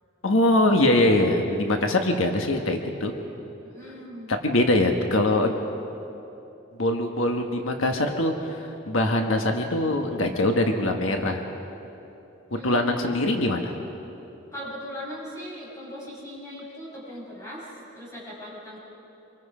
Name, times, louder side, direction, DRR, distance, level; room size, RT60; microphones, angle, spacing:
voice 1, 0.2-3.1 4.3-5.6 6.8-11.4 12.6-13.7, left 1 dB, 85° left, 4 dB, 1.4 m, -23 dB
voice 2, 3.6-4.4 12.5-13.1 14.5-18.8, left 1 dB, 15° left, -6 dB, 6.2 m, -39 dB
26.5 x 22.5 x 5.0 m, 3.0 s
head